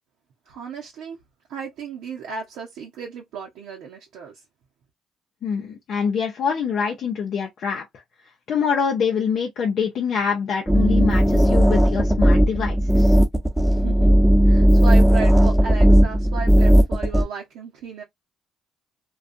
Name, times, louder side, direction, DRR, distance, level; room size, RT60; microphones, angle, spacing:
voice 1, 0.5-1.2 1.5-4.4 13.7-14.1 14.4-18.0, right 6 dB, 80° right, 0.6 m, -34 dB
voice 2, 5.4-7.9 8.5-13.2, left 6 dB, 65° left, 0.6 m, -25 dB
sound 1, 10.7-17.2, equal, 5° right, 0.9 m, -16 dB
2.5 x 2.3 x 2.5 m
supercardioid pair, 60°, 0 cm